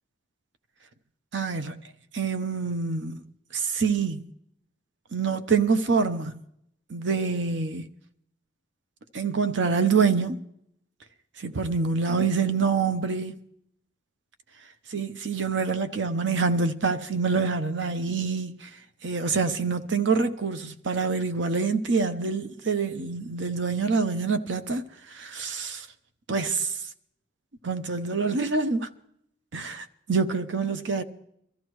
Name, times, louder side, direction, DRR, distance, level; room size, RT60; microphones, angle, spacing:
voice 1, 1.3-1.8 2.1-4.3 5.1-6.4 6.9-7.9 9.1-10.4 11.4-13.4 14.9-18.7 19.0-25.9 26.3-26.8 27.6-28.9 29.5-31.0, right 5 dB, 80° right, 0.8 m, -26 dB
23.5 x 14.0 x 3.1 m
head